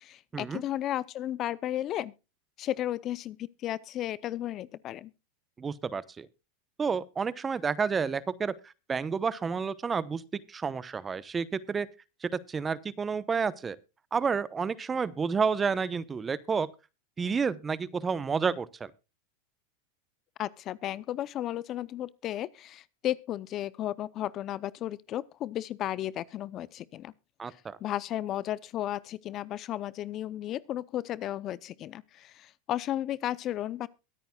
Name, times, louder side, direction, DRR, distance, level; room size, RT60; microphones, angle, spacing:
voice 1, 0.0-2.1 2.6-5.1 20.4-27.1 27.5-33.9, left 12 dB, 40° left, 0.6 m, -34 dB
voice 2, 5.6-6.3 6.8-10.2 10.5-11.9 12.2-13.8 14.1-16.7 17.2-18.9 27.4-27.8, right 5 dB, 20° right, 0.8 m, -30 dB
23.0 x 8.9 x 2.3 m
hypercardioid pair, 115°, 0 cm